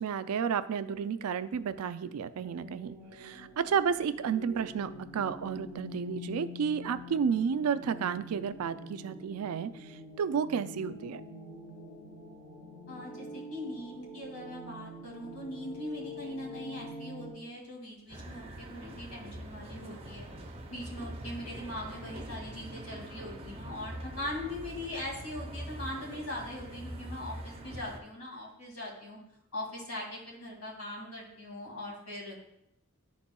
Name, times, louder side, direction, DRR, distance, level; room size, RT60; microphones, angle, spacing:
voice 1, 0.0-9.7 10.2-11.2, right 7 dB, 90° right, 13 dB, 0.4 m, -31 dB
sound 1, 2.4-17.3, left 1 dB, 35° left, 1.0 m, -46 dB
voice 2, 12.9-20.3 20.7-29.2 29.5-32.4, left 1 dB, 75° left, -2 dB, 2.2 m, -41 dB
sound 2, 18.1-28.0, right 1 dB, 25° right, 0.6 m, -43 dB
11.0 x 4.2 x 2.2 m, 0.78 s
head